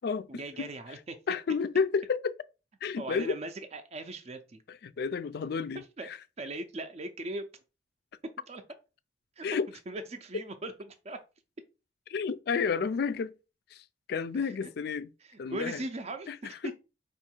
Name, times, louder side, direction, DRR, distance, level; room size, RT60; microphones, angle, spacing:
voice 1, 0.3-1.2 3.0-4.6 5.7-6.1 6.4-7.5 8.5-8.6 9.4-9.5 9.9-10.7 11.0-11.2 14.4-14.7 15.2-16.7, right 2 dB, 35° right, 0.4 m, -39 dB
voice 2, 1.3-2.3 2.8-3.4 4.8-6.2 9.4-9.7 12.1-13.3 13.7-15.1 15.4-15.8 16.3-16.7, left 5 dB, 60° left, 0.3 m, -31 dB
4.5 x 2.5 x 4.4 m
head